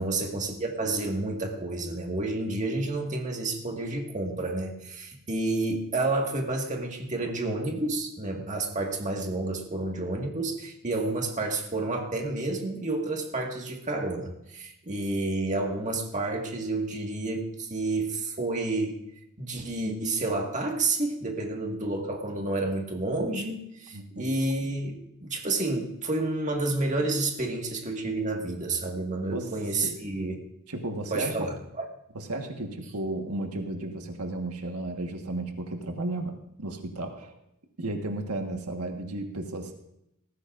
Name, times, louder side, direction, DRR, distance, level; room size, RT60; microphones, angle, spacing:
voice 1, 0.0-19.0 19.4-30.3 31.1-31.9, right 2 dB, 35° right, 1 dB, 1.8 m, -30 dB
voice 2, 23.9-24.3 29.3-29.5 29.8-29.9 30.7-31.4 32.1-37.4 37.8-39.7, right 2 dB, 85° right, 4 dB, 1.5 m, -34 dB
19.0 x 15.0 x 2.5 m, 0.81 s
head